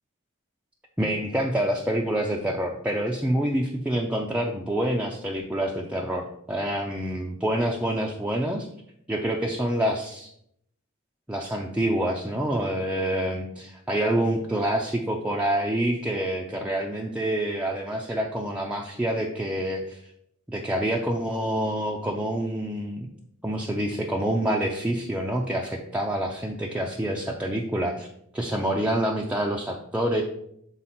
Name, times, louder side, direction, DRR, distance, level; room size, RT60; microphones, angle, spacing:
voice 1, 1.0-8.7 9.1-10.3 11.3-20.0 20.5-23.1 23.4-28.1 28.3-30.2, right 1 dB, 5° right, -1 dB, 0.5 m, -27 dB
7.3 x 3.9 x 4.2 m, 0.72 s
head